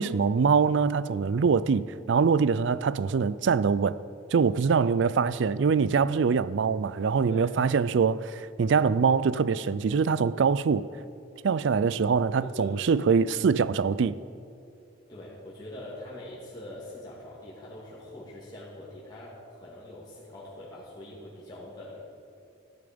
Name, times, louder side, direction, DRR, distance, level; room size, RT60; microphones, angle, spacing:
voice 1, 0.0-4.0 4.3-10.9 11.4-14.1, right 5 dB, 65° right, 0.4 m, -24 dB
voice 2, 12.4-12.8 13.3-13.5 15.1-22.1, left 1 dB, 20° left, 2.2 m, -43 dB
13.5 x 10.5 x 5.2 m
head